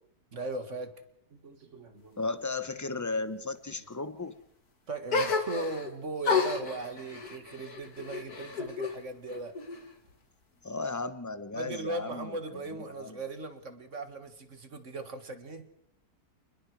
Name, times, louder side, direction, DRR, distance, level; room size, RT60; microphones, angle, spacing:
voice 1, 0.3-0.9 1.3-2.3 3.8-3.9 4.9-9.6 11.5-15.7, right 2 dB, 50° right, 8 dB, 2.2 m, -38 dB
voice 2, 2.2-4.3 10.6-12.3 12.9-13.2, left 3 dB, 15° left, 12 dB, 0.8 m, -35 dB
sound 1, 5.1-5.9 6.2-9.0 9.3-10.1, left 4 dB, 80° left, 2.7 m, -31 dB
28.0 x 20.5 x 4.7 m, 0.71 s
omnidirectional pair, 1.6 m